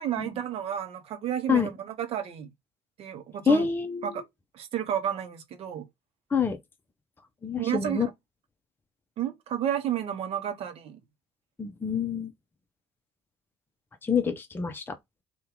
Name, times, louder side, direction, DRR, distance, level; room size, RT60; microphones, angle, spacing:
voice 1, 0.0-2.5 3.0-3.7 4.0-4.2 4.5-5.9 7.6-8.1 9.2-11.0, right 10 dB, 50° right, 0.8 m, -31 dB
voice 2, 3.5-4.1 6.3-6.6 7.4-8.1 11.6-12.3 14.0-15.0, left 6 dB, 15° left, 0.6 m, -26 dB
2.7 x 2.3 x 3.7 m
figure-of-eight pair, 55°, 13 cm